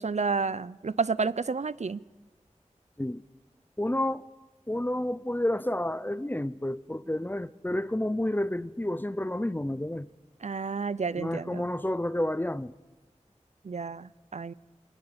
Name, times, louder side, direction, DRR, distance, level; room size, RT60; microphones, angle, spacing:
voice 1, 0.0-2.0 10.4-11.7 13.6-14.5, right 4 dB, 65° right, 0.5 m, -30 dB
voice 2, 3.8-4.3 4.7-10.1 11.2-12.7, left 1 dB, 15° left, 0.7 m, -30 dB
21.0 x 18.5 x 7.0 m
wide cardioid pair, 45°, 13 cm